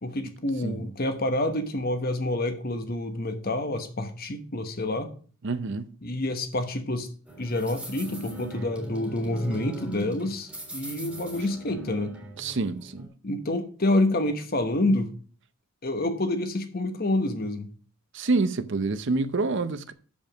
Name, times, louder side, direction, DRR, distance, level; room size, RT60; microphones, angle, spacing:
voice 1, 0.0-5.1 6.0-7.1 7.4-12.1 13.2-15.1 15.8-17.7, left 1 dB, 45° left, 1.1 m, -28 dB
voice 2, 5.4-5.9 12.4-13.1 18.1-19.9, right 3 dB, 55° right, 0.6 m, -27 dB
sound 1, 7.3-13.1, right 1 dB, 5° right, 1.9 m, -40 dB
7.0 x 5.3 x 6.2 m
head